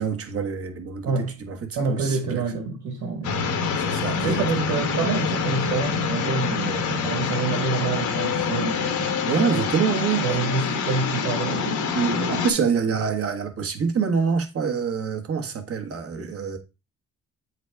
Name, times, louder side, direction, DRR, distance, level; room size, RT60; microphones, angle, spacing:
voice 1, 0.0-2.4 3.8-4.3 9.3-10.3 11.9-16.6, right 6 dB, 50° right, 1.3 m, -26 dB
voice 2, 1.8-3.5 4.2-9.1 10.2-12.4, right 4 dB, 80° right, 1.7 m, -27 dB
sound 1, 3.2-12.5, left 5 dB, 75° left, 1.2 m, -26 dB
8.0 x 4.0 x 3.4 m
cardioid pair, 90°, 30 cm